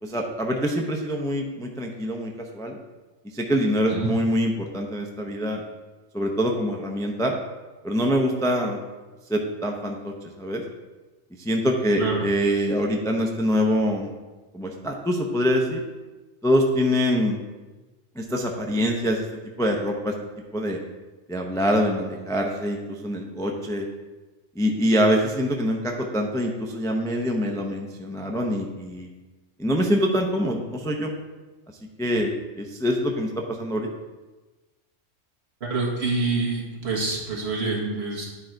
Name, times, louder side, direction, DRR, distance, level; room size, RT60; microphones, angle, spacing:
voice 1, 0.0-2.8 3.3-5.6 6.1-7.3 7.8-8.8 9.3-10.6 11.4-14.1 14.5-15.8 16.4-17.4 18.2-19.3 19.6-20.1 20.5-20.8 21.3-23.9 24.6-29.1 29.6-31.1 32.0-33.9, equal, 5° left, 1 dB, 0.4 m, -24 dB
voice 2, 35.6-38.3, right 3 dB, 60° right, -3 dB, 1.6 m, -26 dB
10.0 x 3.9 x 4.4 m, 1.2 s
omnidirectional pair, 1.3 m